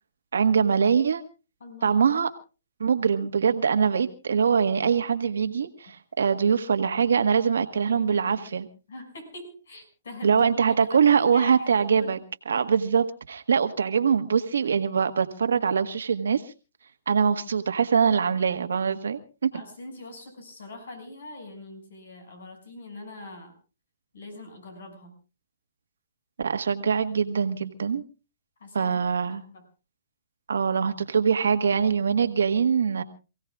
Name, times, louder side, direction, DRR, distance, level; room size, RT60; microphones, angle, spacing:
voice 1, 0.3-1.2 1.8-2.3 2.8-8.7 10.2-12.2 12.5-16.4 17.1-19.5 26.4-28.0 28.7-29.4 30.5-33.0, right 6 dB, 90° right, 8 dB, 1.5 m, -23 dB
voice 2, 1.6-2.1 7.8-8.5 8.9-12.1 19.5-23.5 24.1-25.2 28.6-29.1 29.5-29.6, left 2 dB, 80° left, 7 dB, 6.3 m, -43 dB
28.0 x 16.5 x 2.4 m, 0.32 s
hypercardioid pair, 150°, 0 cm